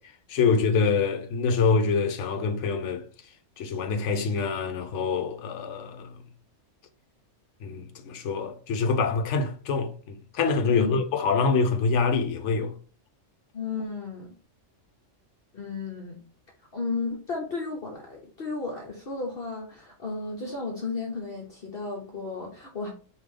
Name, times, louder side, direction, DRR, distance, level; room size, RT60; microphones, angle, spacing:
voice 1, 0.3-3.0 3.6-6.1 7.6-12.7, left 4 dB, 70° left, 1.0 m, -25 dB
voice 2, 10.6-11.0 13.5-14.3 15.5-16.2 16.7-22.9, left 4 dB, 50° left, 1.0 m, -33 dB
4.9 x 2.7 x 3.6 m
omnidirectional pair, 1.3 m